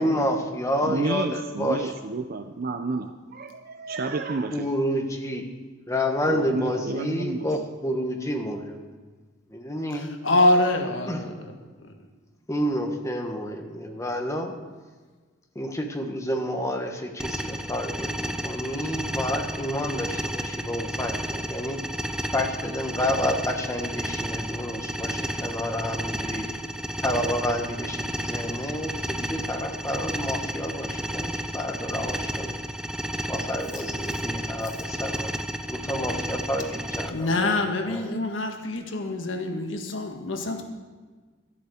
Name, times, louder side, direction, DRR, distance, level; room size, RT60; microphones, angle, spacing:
voice 1, 0.0-1.8 4.5-5.4 5.9-8.8 9.5-10.1 11.1-11.2 12.5-14.5 15.5-21.8 22.3-26.4 27.0-32.6 33.3-35.3 35.7-37.6 37.9-38.0, equal, 15° left, 4 dB, 1.3 m, -29 dB
voice 2, 0.8-4.7 6.2-7.7, right 3 dB, 50° right, 7 dB, 0.6 m, -30 dB
voice 3, 9.9-11.5 11.8-11.9 33.7-33.8 37.1-40.6, left 2 dB, 80° left, 4 dB, 1.6 m, -25 dB
sound 1, 17.2-37.1, equal, 5° right, 0.6 m, -32 dB
12.5 x 8.4 x 6.5 m, 1.4 s
head